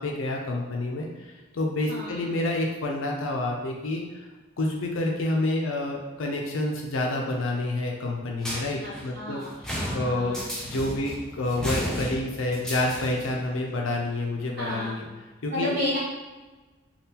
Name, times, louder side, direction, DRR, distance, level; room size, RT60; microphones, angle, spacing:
voice 1, 0.0-4.2 4.6-9.4 9.9-10.4 10.6-15.0 15.4-15.8, left 2 dB, 80° left, 0 dB, 0.5 m, -28 dB
voice 2, 1.9-2.2 8.8-10.4 14.6-15.0 15.5-16.0, left 1 dB, 50° right, -10 dB, 0.8 m, -32 dB
sound 1, 8.4-13.4, equal, 5° left, 0.4 m, -34 dB
3.5 x 2.3 x 2.8 m, 1.2 s
head